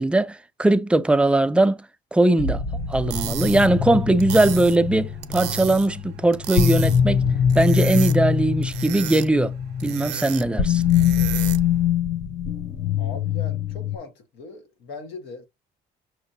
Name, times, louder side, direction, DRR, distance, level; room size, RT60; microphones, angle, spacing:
voice 1, 0.0-1.8 2.1-2.6 2.9-7.3 7.6-9.5 9.8-10.8, right 2 dB, 5° right, 0.3 m, -20 dB
sound 1, 2.4-14.0, left 8 dB, 45° left, 0.7 m, -24 dB
sound 2, 2.9-11.8, right 14 dB, 85° right, 0.5 m, -34 dB
voice 2, 13.0-15.5, left 3 dB, 85° left, 1.2 m, -39 dB
6.0 x 2.6 x 2.6 m
cardioid pair, 110°, 17 cm